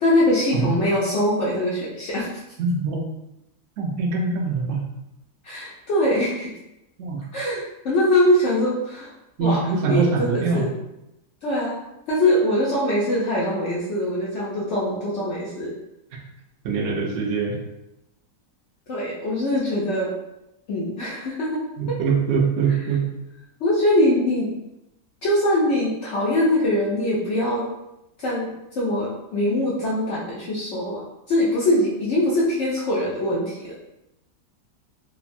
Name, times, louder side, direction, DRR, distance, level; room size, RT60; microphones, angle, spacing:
voice 1, 0.0-2.3 5.4-6.5 7.3-9.1 9.4-10.7 11.4-11.8 12.1-15.7 18.9-20.1 20.7-21.6 21.9-22.0 23.6-24.5 25.2-27.7 28.2-33.8, left 1 dB, 65° left, -6 dB, 0.7 m, -22 dB
voice 2, 2.6-3.0 3.8-4.8 7.0-7.2 9.4-10.7 16.6-17.6 21.8-23.1, right 4 dB, 70° right, 0 dB, 0.7 m, -23 dB
3.2 x 2.1 x 2.5 m, 0.90 s
omnidirectional pair, 1.8 m